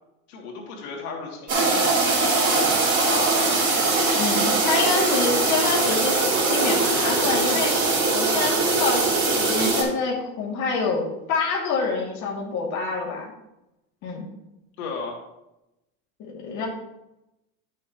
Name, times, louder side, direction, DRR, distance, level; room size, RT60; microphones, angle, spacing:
voice 1, 0.3-3.5 14.8-15.2, left 4 dB, 90° left, -1 dB, 2.6 m, -34 dB
sound 1, 1.5-9.8, right 3 dB, 25° right, 3.1 m, -21 dB
voice 2, 4.2-7.8 8.1-13.3 14.0-14.3 16.2-16.7, left 4 dB, 40° left, -2 dB, 2.4 m, -27 dB
11.5 x 6.9 x 2.9 m, 0.91 s
supercardioid pair, 140°, 43 cm